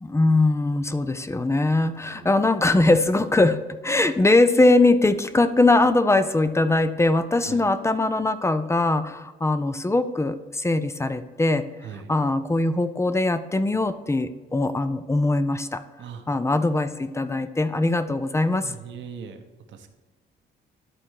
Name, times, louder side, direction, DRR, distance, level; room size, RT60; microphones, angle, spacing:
voice 1, 0.0-11.7 12.1-15.8 16.3-18.7, left 2 dB, 15° left, 12 dB, 0.5 m, -21 dB
voice 2, 11.8-12.1 16.0-16.3 18.6-19.4 19.7-19.9, right 7 dB, 70° right, 6 dB, 1.0 m, -39 dB
11.5 x 4.2 x 4.7 m, 1.2 s
cardioid pair, 90°, 20 cm